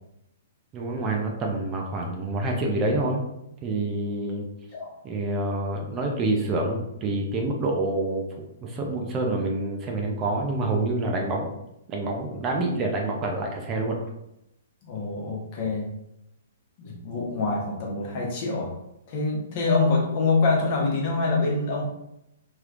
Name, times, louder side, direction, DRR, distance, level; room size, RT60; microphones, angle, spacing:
voice 1, 0.7-3.2 3.6-4.5 5.0-8.2 8.6-11.5 11.9-14.0, right 2 dB, 25° right, 0 dB, 0.6 m, -27 dB
voice 2, 14.8-15.9 16.8-18.7 19.1-21.8, left 3 dB, 45° left, -2 dB, 1.1 m, -25 dB
3.2 x 3.0 x 2.5 m, 0.82 s
hypercardioid pair, 130°, 0 cm